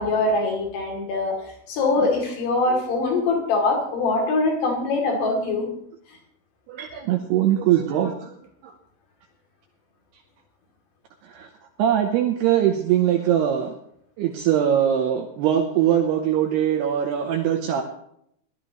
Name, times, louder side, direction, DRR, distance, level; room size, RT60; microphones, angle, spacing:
voice 1, 0.0-5.7 6.1-6.2, left 3 dB, 60° left, 0 dB, 4.6 m, -23 dB
voice 2, 6.7-8.3 8.6-8.7 11.2-11.5 11.8-13.7 14.2-17.8, right 10 dB, 90° right, 3 dB, 2.3 m, -22 dB
20.0 x 12.5 x 3.0 m, 0.72 s
omnidirectional pair, 5.8 m